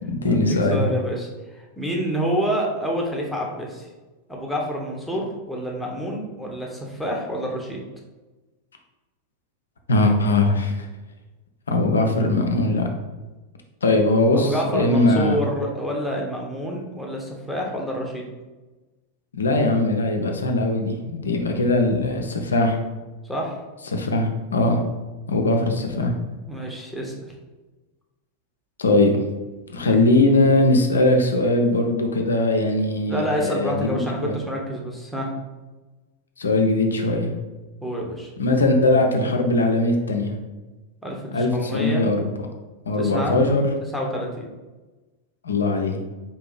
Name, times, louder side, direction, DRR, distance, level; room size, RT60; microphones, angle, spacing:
voice 1, 0.0-0.9 9.9-10.9 11.7-12.9 13.8-15.4 19.3-22.8 23.9-24.8 25.3-26.1 28.8-29.1 29.7-34.4 36.4-37.3 38.4-40.3 41.3-42.3 42.9-43.6 45.4-46.0, left 2 dB, 70° left, 4 dB, 0.6 m, -20 dB
voice 2, 0.7-3.9 4.3-7.8 14.3-18.3 23.3-23.6 26.5-27.1 33.1-35.3 37.8-38.3 41.0-42.1 43.0-43.4 43.9-44.5, equal, ahead, -2 dB, 0.9 m, -28 dB
4.1 x 2.8 x 3.9 m, 1.2 s
figure-of-eight pair, 90°, 0 cm